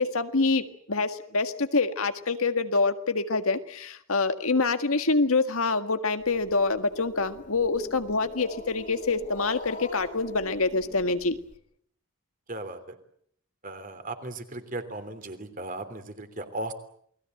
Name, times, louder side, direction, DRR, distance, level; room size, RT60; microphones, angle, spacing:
voice 1, 0.0-11.4, left 3 dB, 75° left, 8 dB, 1.8 m, -26 dB
Growling, 6.2-11.6, left 1 dB, 35° left, 3.5 m, -44 dB
voice 2, 12.5-12.9 13.6-16.7, right 2 dB, 35° right, 9 dB, 3.2 m, -36 dB
28.5 x 20.5 x 7.8 m, 0.66 s
head